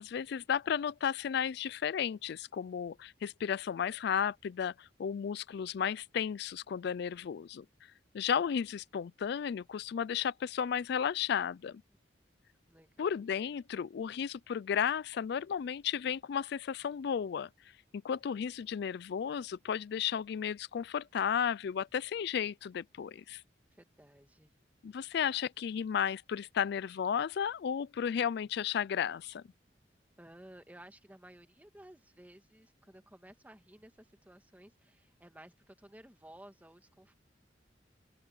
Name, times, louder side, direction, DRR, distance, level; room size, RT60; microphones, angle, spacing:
voice 1, 0.0-7.6 8.1-11.8 13.0-17.5 17.9-23.4 24.8-29.4, left 8 dB, 65° left, 0.3 m, -33 dB
voice 2, 12.7-13.1 23.8-24.5 30.2-37.1, right 1 dB, 10° right, 1.7 m, -55 dB
open air
head